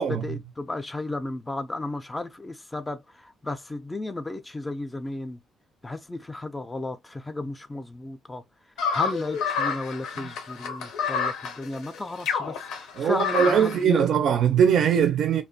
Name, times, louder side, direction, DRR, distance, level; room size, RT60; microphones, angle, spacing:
voice 1, 0.0-5.4 5.8-8.4 8.9-14.1, left 2 dB, 15° left, 0.3 m, -34 dB
sound 1, 8.8-13.8, left 6 dB, 90° left, 0.5 m, -29 dB
voice 2, 13.0-15.4, right 8 dB, 70° right, 0.4 m, -21 dB
2.4 x 2.1 x 2.6 m
cardioid pair, 90°, 0 cm